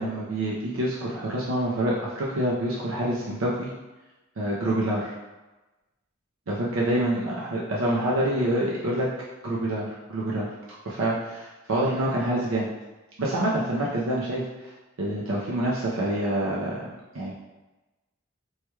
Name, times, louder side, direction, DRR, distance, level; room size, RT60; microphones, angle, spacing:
voice 1, 0.0-3.7 4.4-5.2 6.5-9.1 9.4-10.5 10.8-12.7 13.2-14.7 15.0-16.8 17.1-17.3, right 1 dB, 85° right, -5 dB, 0.6 m, -26 dB
4.6 x 2.3 x 3.1 m, 1.1 s
head